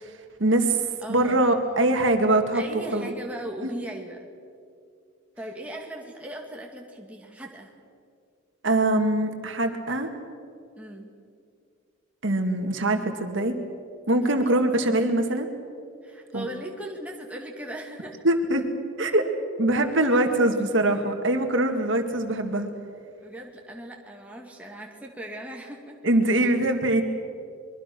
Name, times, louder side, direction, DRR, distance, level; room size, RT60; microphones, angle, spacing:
voice 1, 0.4-0.8 1.1-2.6 2.9-3.1 3.6-3.7 8.6-10.1 12.2-13.5 14.1-15.5 16.3-16.5 18.2-18.7 19.0-19.3 19.6-22.7 26.0-27.0, right 1 dB, 65° right, 5 dB, 2.0 m, -23 dB
voice 2, 1.0-2.0 2.5-4.2 5.4-7.7 10.8-11.1 14.3-14.6 16.0-18.2 23.2-26.0, right 1 dB, 5° right, 0 dB, 2.1 m, -38 dB
24.5 x 22.5 x 6.1 m, 2.4 s
head